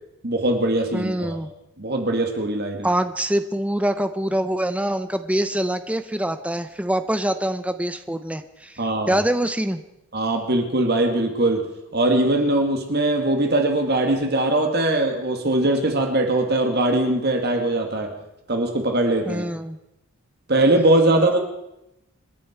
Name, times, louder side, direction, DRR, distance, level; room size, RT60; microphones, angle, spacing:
voice 1, 0.2-1.4 1.8-2.9 8.8-9.2 10.1-18.1 18.5-19.4 20.5-21.4, right 1 dB, 50° right, 4 dB, 2.4 m, -21 dB
voice 2, 0.9-1.5 2.8-9.8 19.3-19.8 21.1-21.4, right 1 dB, 5° right, 9 dB, 0.7 m, -25 dB
27.5 x 11.0 x 4.6 m, 0.86 s
head